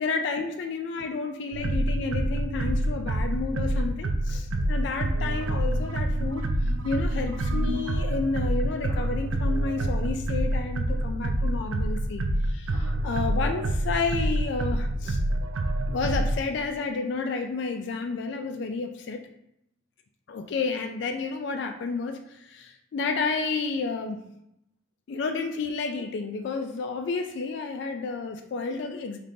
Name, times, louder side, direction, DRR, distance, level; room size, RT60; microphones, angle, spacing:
voice 1, 0.0-6.5 6.8-15.2 15.9-19.2 20.3-24.2 25.1-29.2, left 4 dB, 60° left, 5 dB, 0.3 m, -31 dB
sound 1, 1.5-16.4, right 1 dB, 90° right, 0.5 m, -27 dB
3.9 x 2.7 x 3.6 m, 0.80 s
head